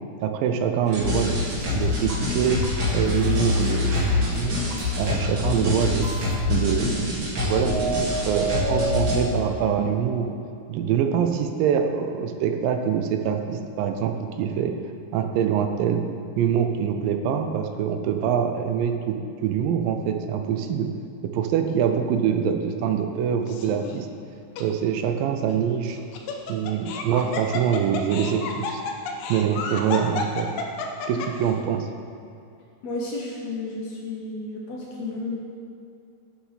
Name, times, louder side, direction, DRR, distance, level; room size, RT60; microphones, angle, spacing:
voice 1, 0.2-1.4 1.7-2.6 2.9-4.6 5.0-6.1 6.5-10.3 10.7-14.8 15.1-16.0 16.4-20.9 21.3-24.1 24.6-26.0 26.5-28.8 29.3-30.5 31.1-31.9, right 8 dB, 85° right, 6 dB, 2.4 m, -24 dB
sound 1, 0.8-9.2, left 2 dB, 40° right, 2.8 m, -25 dB
sound 2, 1.4-6.4, right 1 dB, 60° right, 1.6 m, -39 dB
Laughter, 23.5-23.9 24.6-24.7 25.9-31.5, left 4 dB, 90° left, 2.5 m, -31 dB
voice 2, 32.8-35.3, left 2 dB, 65° left, -3 dB, 1.8 m, -32 dB
9.7 x 6.1 x 5.7 m, 2.5 s
omnidirectional pair, 3.9 m